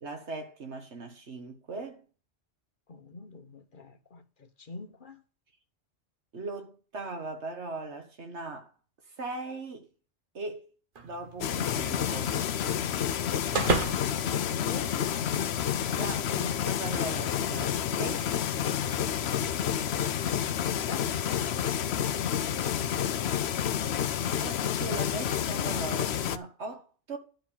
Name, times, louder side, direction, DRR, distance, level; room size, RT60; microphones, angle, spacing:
voice 1, 0.0-2.1 6.3-8.7 9.2-9.9 10.3-10.7 11.0-12.4 15.9-18.3 24.3-27.2, right 3 dB, 85° right, 1.9 m, -39 dB
voice 2, 2.9-5.2 13.7-15.0 16.3-16.6, left 4 dB, 50° left, 1.2 m, -45 dB
sound 1, 11.0-15.4, right 4 dB, 50° right, 1.3 m, -35 dB
sound 2, 11.4-26.4, left 9 dB, 70° left, 0.9 m, -29 dB
11.5 x 4.6 x 7.1 m
omnidirectional pair, 1.1 m